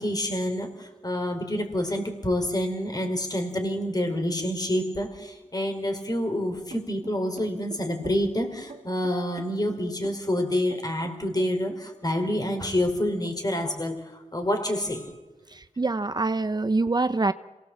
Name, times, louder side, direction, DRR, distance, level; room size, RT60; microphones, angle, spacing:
voice 1, 0.0-15.1, left 1 dB, 30° left, 5 dB, 4.6 m, -28 dB
sound 1, 6.7-11.9, right 4 dB, 65° right, 2.5 m, -46 dB
voice 2, 15.5-17.3, right 3 dB, 35° right, 12 dB, 0.7 m, -25 dB
27.0 x 19.0 x 7.9 m, 1.2 s
cardioid pair, 55°, 12 cm